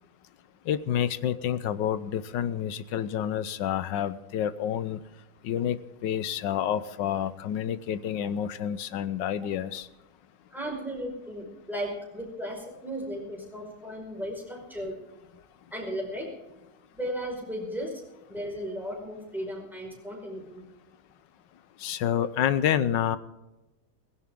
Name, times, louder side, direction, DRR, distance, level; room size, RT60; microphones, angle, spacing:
voice 1, 0.6-5.0 5.4-9.9 21.8-23.2, left 9 dB, 75° left, 15 dB, 1.4 m, -28 dB
voice 2, 10.5-15.0 15.7-16.3 16.9-18.0 18.3-20.6, equal, ahead, -1 dB, 5.1 m, -35 dB
17.5 x 16.5 x 3.7 m, 1.0 s
omnidirectional pair, 2.0 m